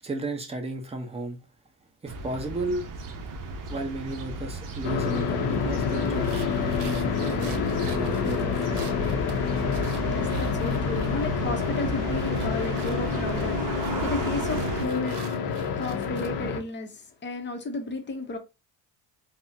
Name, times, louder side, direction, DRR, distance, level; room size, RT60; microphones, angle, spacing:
voice 1, 0.0-1.4 2.0-2.9 3.7-8.8, right 2 dB, 15° right, 0.7 m, -34 dB
sound 1, 2.1-14.9, right 3 dB, 50° right, 0.7 m, -35 dB
sound 2, 4.8-16.6, left 6 dB, 65° left, 0.6 m, -28 dB
sound 3, 6.0-11.3 11.6-16.3, right 7 dB, 90° right, 0.7 m, -46 dB
voice 2, 10.0-13.6 14.0-15.2 15.7-18.4, left 2 dB, 25° left, 0.6 m, -33 dB
3.8 x 2.0 x 2.6 m
cardioid pair, 120°, 41 cm